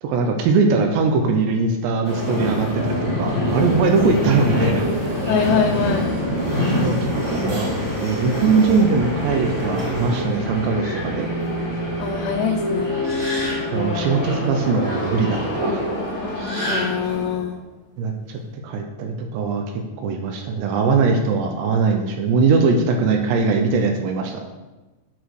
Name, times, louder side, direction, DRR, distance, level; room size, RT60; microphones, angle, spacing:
voice 1, 0.0-4.9 6.8-7.7 8.0-11.3 13.7-15.8 18.0-19.6 20.0-24.4, right 4 dB, 80° right, 4 dB, 2.8 m, -21 dB
Subway metro underground, 2.0-17.3, left 1 dB, 35° right, 1.1 m, -26 dB
sound 1, 3.6-10.2, right 1 dB, 50° right, 3.2 m, -31 dB
voice 2, 5.3-6.1 12.0-13.0 16.7-17.6, left 7 dB, 85° left, 1 dB, 3.1 m, -23 dB
sound 2, 9.6-17.6, equal, 5° left, 1.5 m, -31 dB
9.2 x 6.3 x 4.7 m, 1.1 s
omnidirectional pair, 5.4 m